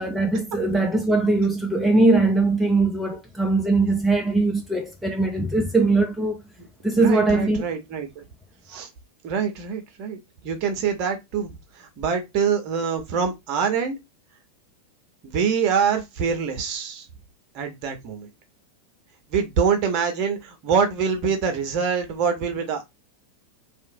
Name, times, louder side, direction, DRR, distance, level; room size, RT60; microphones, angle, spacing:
voice 1, 0.0-6.4 6.8-7.6 8.7-8.8, right 2 dB, ahead, 0.4 m, -21 dB
voice 2, 7.0-8.2 8.7-8.9 9.2-14.0 15.2-17.1 17.5-18.3 19.3-22.8, right 6 dB, 40° right, 0.7 m, -25 dB
2.8 x 2.1 x 2.6 m
figure-of-eight pair, 90°, 0 cm